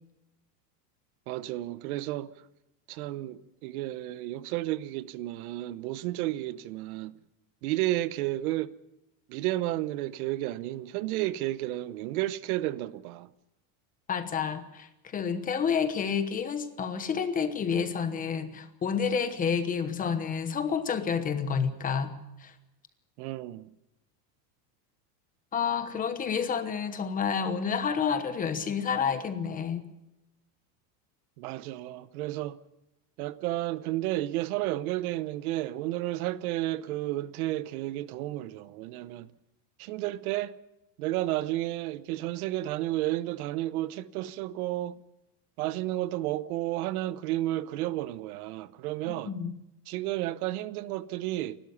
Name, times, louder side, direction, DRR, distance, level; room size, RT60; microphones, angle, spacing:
voice 1, 1.3-2.3 2.9-7.1 7.6-8.7 9.3-13.3 23.2-23.7 31.4-32.6 33.2-39.3 39.8-40.6 41.0-45.0 45.6-49.3 49.9-51.6, right 15 dB, 65° right, 0.9 m, -32 dB
voice 2, 14.1-22.1 22.4-22.5 25.5-29.8 49.1-49.5, left 6 dB, 15° left, 1.1 m, -29 dB
29.0 x 12.5 x 7.1 m
supercardioid pair, 170°, 48 cm